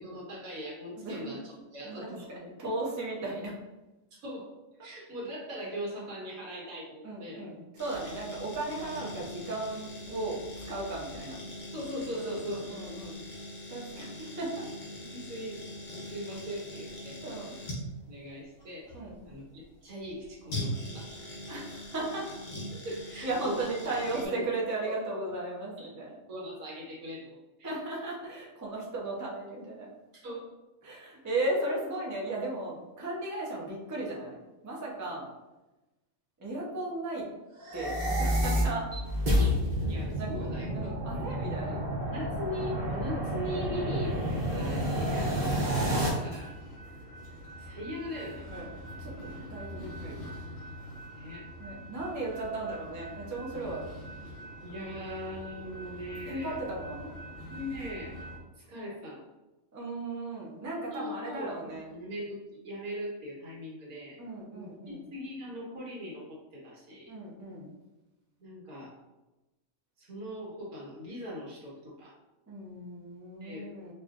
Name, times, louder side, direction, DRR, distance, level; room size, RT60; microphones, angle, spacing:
voice 1, 0.0-1.4 1.7-2.3 4.2-4.5 4.8-7.4 11.7-13.0 15.1-15.6 15.9-17.2 18.1-18.9 19.2-21.3 22.8-23.7 24.2-24.4 24.9-25.0 25.8-25.9 26.3-27.7 30.1-30.5 39.9-40.9 41.7-46.5 47.6-48.4 51.1-51.5 54.6-56.6 57.5-58.2 58.6-59.2 60.7-64.2 64.5-67.1 68.4-69.0 70.0-72.1 73.4-73.7, equal, 85° right, -4 dB, 1.6 m, -40 dB
voice 2, 0.9-1.3 1.8-3.6 7.0-10.4 10.7-11.4 12.2-13.2 13.7-14.7 17.2-17.6 18.9-19.2 21.5-22.3 23.2-26.1 27.6-29.9 30.8-34.4 34.6-35.3 36.4-37.3 37.7-38.9 40.1-41.8 44.8-45.3 48.5-48.7 49.0-50.1 51.6-53.8 56.3-57.1 59.7-61.9 64.2-65.0 67.1-67.7 72.5-73.9, right 2 dB, 20° right, -4 dB, 0.6 m, -36 dB
sound 1, 7.8-24.2, left 1 dB, 65° left, 1.4 m, -42 dB
sound 2, 37.6-46.1, equal, 40° right, 1.0 m, -29 dB
sound 3, 45.4-58.4, equal, 45° left, 1.0 m, -44 dB
4.8 x 2.5 x 2.5 m, 1.0 s
omnidirectional pair, 1.5 m